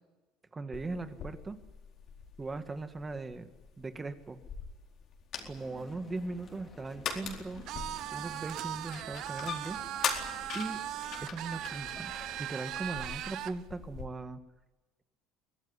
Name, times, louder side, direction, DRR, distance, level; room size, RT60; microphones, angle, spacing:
voice 1, 0.5-1.6 2.4-3.5 3.8-4.4 5.5-7.6 8.1-9.8 10.5-10.8 11.2-12.1 12.4-14.4, right 3 dB, 20° right, 9 dB, 1.8 m, -39 dB
sound 1, 0.7-14.1, left 7 dB, 50° left, 4.3 m, -42 dB
sound 2, 5.4-12.5, left 5 dB, 30° left, 4.6 m, -53 dB
sound 3, 7.7-13.6, right 13 dB, 60° right, 1.1 m, -39 dB
23.5 x 17.5 x 9.9 m, 1.2 s
supercardioid pair, 115°, 0 cm